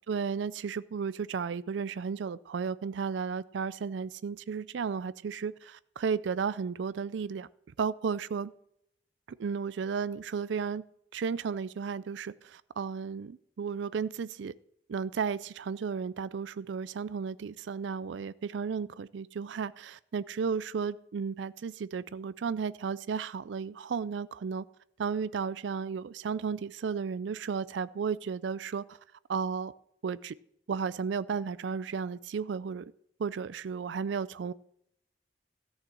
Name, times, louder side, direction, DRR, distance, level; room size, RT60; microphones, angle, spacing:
voice 1, 0.1-7.5 7.8-8.5 9.4-10.8 11.1-14.5 14.9-24.6 25.0-29.0 29.3-29.7 30.0-30.3 30.7-32.9 33.2-34.5, right 6 dB, 80° right, 17 dB, 0.4 m, -34 dB
13.5 x 6.4 x 7.6 m, 0.75 s
head